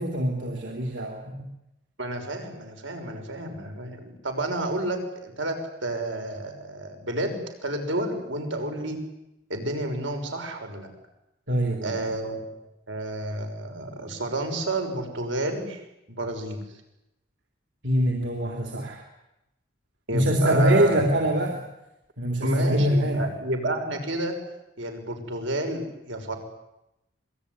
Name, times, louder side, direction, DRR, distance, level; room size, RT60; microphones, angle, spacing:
voice 1, 0.0-1.5 11.5-11.9 17.8-19.0 20.1-21.6 22.2-23.3, equal, 70° right, 2 dB, 3.3 m, -24 dB
voice 2, 2.0-9.0 9.5-10.9 11.8-12.4 12.9-16.8 20.1-21.2 22.4-24.4 24.8-26.4, right 1 dB, 85° right, 5 dB, 6.5 m, -30 dB
26.5 x 21.0 x 9.9 m, 0.90 s
head